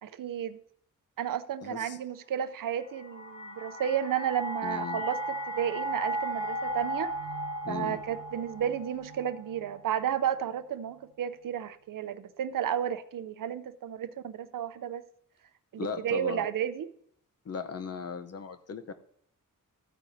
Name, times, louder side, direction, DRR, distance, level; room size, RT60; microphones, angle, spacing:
voice 1, 0.0-0.6 1.2-5.2 5.5-7.1 7.7-15.0 16.0-16.9, right 9 dB, 80° right, 0.6 m, -32 dB
voice 2, 1.6-2.0 4.6-5.0 7.6-8.0 15.8-16.5 17.4-18.9, left 6 dB, 50° left, 0.8 m, -37 dB
sound 1, 2.8-9.9, right 1 dB, 85° left, 3.4 m, -36 dB
14.0 x 9.1 x 2.7 m
wide cardioid pair, 145°, 32 cm